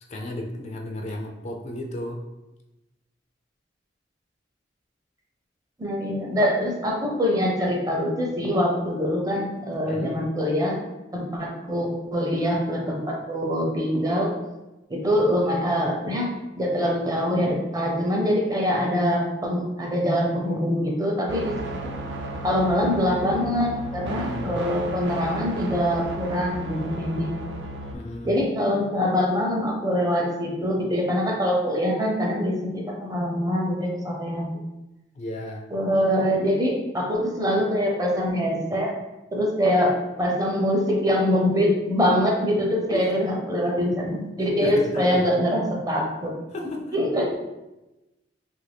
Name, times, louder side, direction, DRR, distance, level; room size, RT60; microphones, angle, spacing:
voice 1, 0.1-2.3 9.9-10.2 24.0-24.5 27.9-28.4 35.1-35.7 42.9-43.1 44.6-45.3 46.5-47.0, left 1 dB, 35° left, 2 dB, 0.3 m, -33 dB
voice 2, 5.8-10.8 11.1-14.3 14.9-16.3 16.6-21.5 21.8-21.9 22.4-27.3 28.2-34.5 35.7-38.9 39.3-39.9 40.2-46.3 46.9-47.3, equal, 20° right, -1 dB, 0.6 m, -24 dB
sound 1, 21.3-28.0, right 1 dB, 70° right, 0.4 m, -34 dB
2.9 x 2.6 x 3.3 m, 1.0 s
head